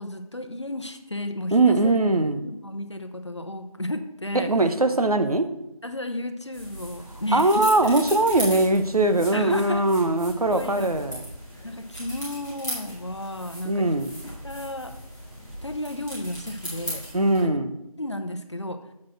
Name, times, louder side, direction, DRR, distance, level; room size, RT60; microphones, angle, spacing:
voice 1, 0.0-1.9 2.4-4.5 5.8-8.0 9.3-9.9 10.5-11.0 11.6-14.0 14.4-14.9 15.6-17.1 17.4-17.6 18.0-18.8, left 1 dB, 50° left, 7 dB, 0.7 m, -33 dB
voice 2, 1.5-2.4 4.3-5.5 7.3-11.2 13.6-14.1 17.1-17.7, right 2 dB, 80° right, 8 dB, 0.9 m, -21 dB
sound 1, 6.5-17.4, equal, ahead, 1.7 m, -38 dB
7.2 x 4.4 x 6.2 m, 0.86 s
figure-of-eight pair, 175°, 19 cm